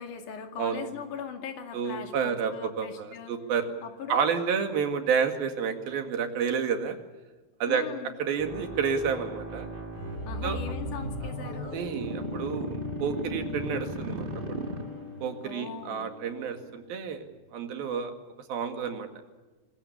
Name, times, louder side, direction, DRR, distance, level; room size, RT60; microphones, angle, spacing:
voice 1, 0.0-3.3 3.8-4.2 7.7-8.1 10.2-11.8 15.4-16.1, left 7 dB, 60° left, 5 dB, 3.5 m, -40 dB
voice 2, 1.7-3.7 4.1-7.0 7.6-7.9 8.2-9.7 10.4-10.6 11.7-14.6 15.2-18.1 18.5-19.1, right 6 dB, 80° right, 6 dB, 3.9 m, -30 dB
sound 1, 8.4-15.3, right 1 dB, 25° right, 1.2 m, -36 dB
Bowed string instrument, 9.9-17.2, left 3 dB, 20° left, 3.9 m, -41 dB
25.0 x 20.5 x 7.1 m, 1.3 s
omnidirectional pair, 4.2 m